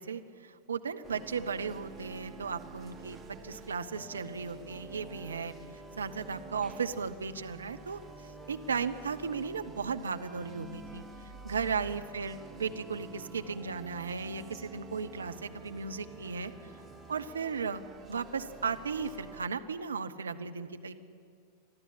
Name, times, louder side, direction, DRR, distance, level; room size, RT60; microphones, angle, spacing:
voice 1, 0.0-5.5 6.0-8.0 8.5-11.0 11.4-16.5 17.1-17.8 18.1-20.9, right 5 dB, 70° right, 8 dB, 0.9 m, -35 dB
sound 1, 1.0-19.5, right 3 dB, 15° right, 1.3 m, -49 dB
22.5 x 13.5 x 8.9 m, 2.3 s
figure-of-eight pair, 90°, 0 cm